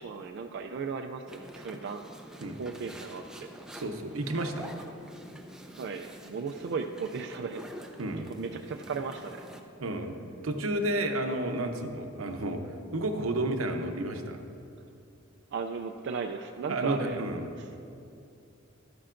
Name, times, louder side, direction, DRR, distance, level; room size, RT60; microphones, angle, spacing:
voice 1, 0.0-2.0 2.6-3.5 5.8-7.6 8.3-9.4 15.5-17.2, right 5 dB, 55° right, 4 dB, 0.3 m, -36 dB
sound 1, 1.3-9.6, equal, 5° right, 0.5 m, -47 dB
voice 2, 3.7-4.7 8.0-8.3 9.8-10.1 10.4-12.6 12.9-14.4 16.7-17.4, right 1 dB, 90° right, 5 dB, 0.8 m, -31 dB
12.0 x 10.0 x 2.5 m, 2.6 s
head